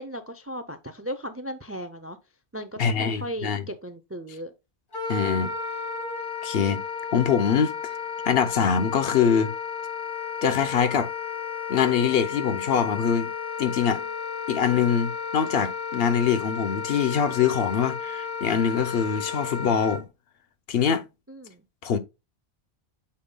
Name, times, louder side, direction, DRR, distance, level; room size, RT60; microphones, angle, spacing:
voice 1, 0.0-2.2 2.5-4.5 21.3-21.6, equal, 20° right, 0.4 m, -36 dB
voice 2, 2.8-3.6 5.1-5.5 6.4-6.8 7.1-7.7 8.2-9.5 10.4-11.1 11.7-13.3 13.6-14.0 14.5-20.0 20.7-21.0 21.8-22.0, left 7 dB, 65° left, 0.9 m, -23 dB
Wind instrument woodwind instrument, 4.9-20.0, left 6 dB, 50° left, 2.1 m, -33 dB
8.4 x 5.6 x 2.2 m
omnidirectional pair, 1.1 m